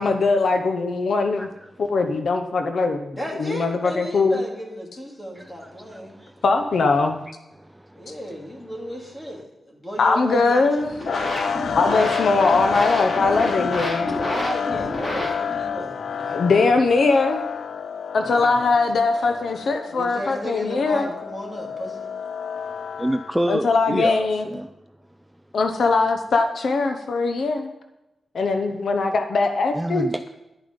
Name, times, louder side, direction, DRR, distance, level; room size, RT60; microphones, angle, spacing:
voice 1, 0.0-1.5 1.8-4.4 6.4-7.2 10.0-10.9 11.8-14.1 16.3-17.4 18.1-21.1 23.5-24.4 25.5-27.7 28.3-30.1, left 3 dB, 60° left, 6 dB, 0.8 m, -21 dB
voice 2, 1.4-1.7 5.4-5.5 7.0-7.1 13.2-13.3 19.2-19.4 23.0-24.7 29.7-30.3, right 1 dB, 5° right, 9 dB, 0.3 m, -27 dB
voice 3, 3.2-6.1 7.9-11.3 13.9-16.5 18.2-18.6 19.9-22.1, equal, 15° left, -1 dB, 2.5 m, -35 dB
sound 1, 10.8-15.7, left 1 dB, 40° left, 3.7 m, -30 dB
sound 2, 11.1-23.4, left 7 dB, 80° left, 0.3 m, -29 dB
11.0 x 8.9 x 5.2 m, 0.95 s
wide cardioid pair, 170°, 0 cm